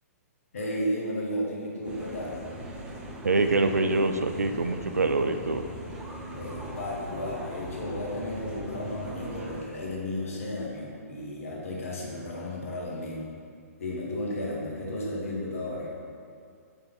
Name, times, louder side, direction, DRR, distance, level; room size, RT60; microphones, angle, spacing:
voice 1, 0.5-2.4 6.3-13.3 13.8-15.9, left 1 dB, 60° left, -3 dB, 1.4 m, -33 dB
sound 1, 1.8-9.6, equal, 15° right, 0.8 m, -40 dB
voice 2, 3.2-5.7, right 3 dB, 75° right, 8 dB, 0.5 m, -25 dB
8.9 x 3.4 x 4.0 m, 2.3 s
figure-of-eight pair, 120°, 8 cm